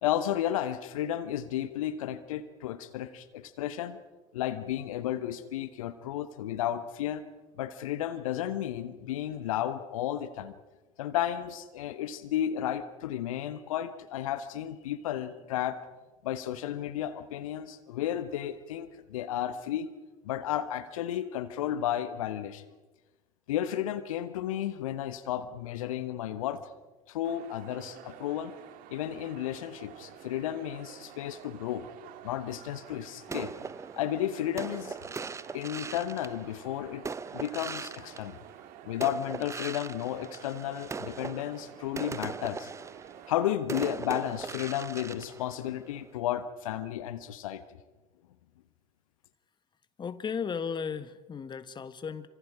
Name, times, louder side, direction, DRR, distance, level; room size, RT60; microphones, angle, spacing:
voice 1, 0.0-4.0 4.3-7.3 7.6-10.5 11.0-15.8 16.2-19.9 20.2-22.6 23.5-26.6 27.1-28.5 28.9-31.8 32.2-33.5 34.0-35.0 35.5-37.0 37.3-38.4 38.8-42.7 43.3-47.6, left 11 dB, 65° left, 12 dB, 1.2 m, -33 dB
sound 1, 27.2-43.5, right 11 dB, 50° right, 1.9 m, -50 dB
sound 2, 33.3-38.7 39.0-46.2, right 5 dB, 15° right, 0.7 m, -40 dB
voice 2, 50.0-52.3, left 6 dB, 25° left, 12 dB, 1.5 m, -35 dB
28.0 x 25.5 x 4.9 m, 1.2 s
figure-of-eight pair, 70°, 19 cm